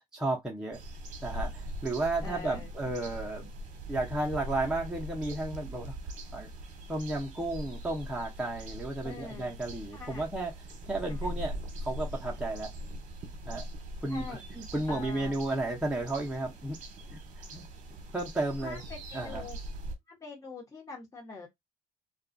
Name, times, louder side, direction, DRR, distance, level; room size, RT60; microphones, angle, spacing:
voice 1, 0.1-0.8 1.2-3.5 3.9-5.9 6.3-6.5 6.9-10.5 10.9-12.7 13.5-13.7 14.0-16.8 17.1-17.2 17.5-17.6 18.1-18.8 19.1-19.5, right 2 dB, 5° right, 0.7 m, -33 dB
sound 1, 0.7-20.0, right 1 dB, 55° right, 0.8 m, -41 dB
voice 2, 2.2-2.7 9.0-9.5 9.9-10.2 11.1-11.3 14.1-14.4 14.9-15.4 18.6-19.6 20.1-21.5, left 4 dB, 20° left, 1.0 m, -44 dB
2.3 x 2.3 x 2.5 m
cardioid pair, 100°, 15 cm